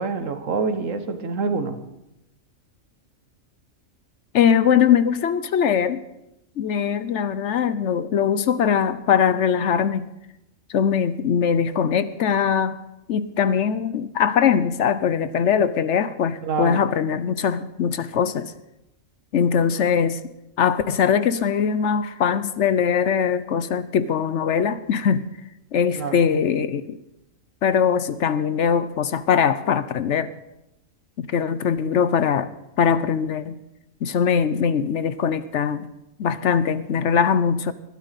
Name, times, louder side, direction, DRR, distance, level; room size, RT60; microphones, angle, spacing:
voice 1, 0.0-1.8 16.4-16.8 26.0-26.2, right 4 dB, 70° right, 8 dB, 1.5 m, -26 dB
voice 2, 4.3-6.0 6.6-10.1 10.7-12.8 13.1-18.5 19.3-20.2 20.6-25.3 25.7-27.0 27.6-30.3 31.2-33.6 34.0-35.9 36.2-37.7, left 7 dB, 65° left, 14 dB, 0.9 m, -21 dB
21.0 x 12.5 x 4.1 m, 0.87 s
omnidirectional pair, 1.4 m